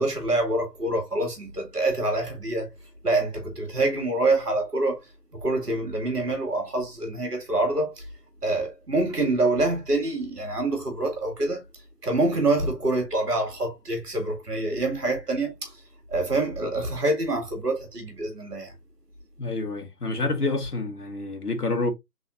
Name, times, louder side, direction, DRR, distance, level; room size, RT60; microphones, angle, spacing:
voice 1, 0.0-2.7 3.0-8.1 8.4-11.6 12.0-15.8 16.1-18.7, right 2 dB, 70° right, 2.3 m, -26 dB
voice 2, 19.4-21.9, left 3 dB, 65° left, 1.5 m, -28 dB
4.1 x 3.8 x 2.5 m
figure-of-eight pair, 175°, 49 cm